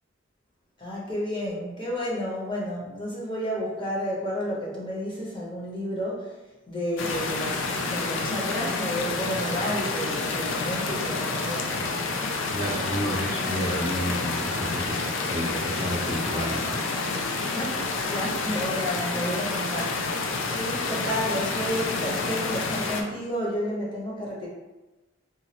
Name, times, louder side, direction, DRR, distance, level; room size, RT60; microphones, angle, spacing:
voice 1, 0.8-6.4 6.7-12.2 12.7-12.8 17.5-24.5, equal, 25° left, -5 dB, 0.9 m, -31 dB
sound 1, 7.0-23.0, left 3 dB, 70° left, 0.4 m, -29 dB
voice 2, 12.5-16.8, equal, 20° right, -6 dB, 0.6 m, -31 dB
3.9 x 2.4 x 2.9 m, 1.1 s
head